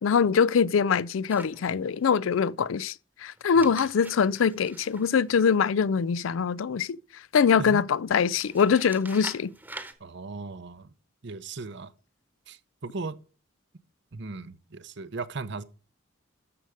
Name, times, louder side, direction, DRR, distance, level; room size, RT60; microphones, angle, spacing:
voice 1, 0.0-2.9 3.2-9.5, left 6 dB, 80° left, 0.4 m, -23 dB
sound 1, 1.3-2.0 3.4-6.0 8.3-9.9, right 2 dB, 10° right, 1.1 m, -45 dB
voice 2, 10.0-10.9 11.2-11.9 12.5-13.2 14.1-15.6, right 3 dB, 60° right, 0.8 m, -37 dB
12.5 x 6.8 x 5.0 m
head